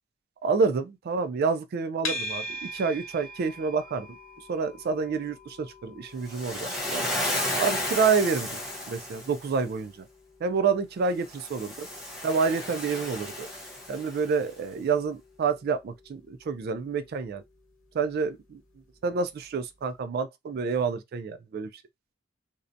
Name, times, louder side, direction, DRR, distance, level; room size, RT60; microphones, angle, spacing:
voice 1, 0.4-2.4 2.7-4.1 4.5-7.1 7.6-8.6 8.9-10.1 10.4-11.9 12.2-13.5 13.9-17.4 17.9-18.6 19.0-21.7, right 5 dB, 50° right, 0.3 m, -28 dB
sound 1, 2.0-19.2, left 1 dB, 80° left, 1.1 m, -44 dB
Waves surf, 6.3-9.5 11.3-14.3, left 1 dB, 5° right, 0.7 m, -33 dB
2.6 x 2.1 x 2.5 m
head